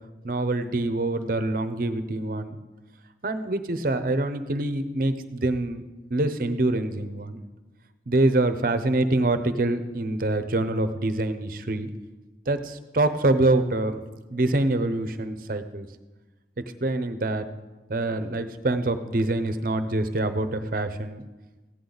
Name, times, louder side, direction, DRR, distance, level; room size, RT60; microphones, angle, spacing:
voice 1, 0.2-2.6 3.2-5.8 6.1-7.4 8.1-11.9 12.5-14.0 14.3-15.9 16.6-17.5 17.9-21.2, right 2 dB, 55° right, 10 dB, 0.7 m, -25 dB
15.0 x 10.0 x 3.9 m, 1.2 s
head